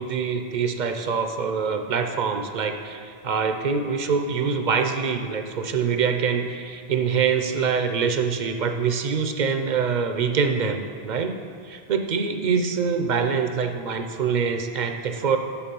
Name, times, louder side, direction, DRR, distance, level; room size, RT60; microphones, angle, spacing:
voice 1, 0.0-11.4 11.6-15.4, right 6 dB, 55° right, 6 dB, 0.6 m, -25 dB
7.1 x 7.0 x 5.2 m, 2.3 s
omnidirectional pair, 1.1 m